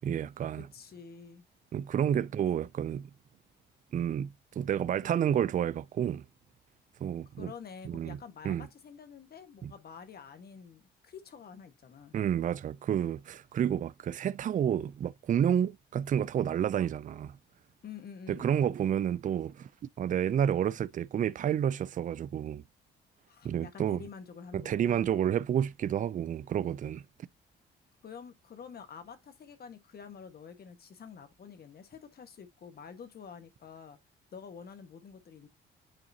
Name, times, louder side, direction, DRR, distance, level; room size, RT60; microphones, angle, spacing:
voice 1, 0.0-0.7 1.7-3.1 3.9-6.2 7.0-7.5 7.8-8.2 8.4-8.7 9.6-9.7 12.1-17.3 18.3-19.7 20.0-22.6 23.4-24.0 24.5-27.0, right 9 dB, 40° right, 0.4 m, -30 dB
voice 2, 0.6-1.4 7.4-12.1 17.8-18.5 23.3-25.1 28.0-34.0 34.3-35.5, left 6 dB, 50° left, 1.5 m, -48 dB
9.0 x 3.7 x 2.8 m
cardioid pair, 90°, 20 cm